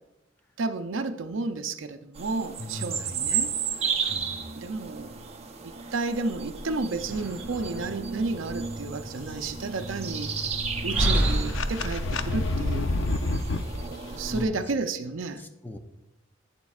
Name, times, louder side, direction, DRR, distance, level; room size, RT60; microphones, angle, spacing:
voice 1, 0.6-3.6 4.5-5.2 5.6-10.4 10.8-12.9 14.1-15.4, right 3 dB, 70° right, 9 dB, 0.6 m, -32 dB
sound 1, 2.2-14.4, right 5 dB, 30° right, 0.7 m, -33 dB
voice 2, 2.6-3.5 4.1-4.5 14.3-14.6 15.4-15.8, left 1 dB, 10° left, 5 dB, 0.5 m, -39 dB
Slam, 6.9-12.6, equal, 10° right, 3.1 m, -33 dB
sound 2, 10.3-13.8, left 2 dB, 65° left, 0.5 m, -29 dB
11.5 x 8.7 x 2.4 m, 0.91 s
head